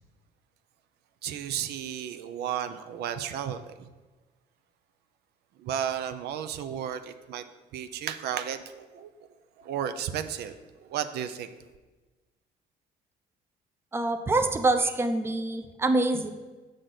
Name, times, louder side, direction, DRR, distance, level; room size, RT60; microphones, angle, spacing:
voice 1, 1.2-3.9 5.6-7.4 7.7-9.1 9.6-10.6 10.8-11.5, right 9 dB, 75° right, 9 dB, 0.5 m, -33 dB
voice 2, 13.9-16.3, right 2 dB, 15° right, 6 dB, 0.5 m, -25 dB
6.5 x 6.3 x 3.9 m, 1.2 s
cardioid pair, 110°, 17 cm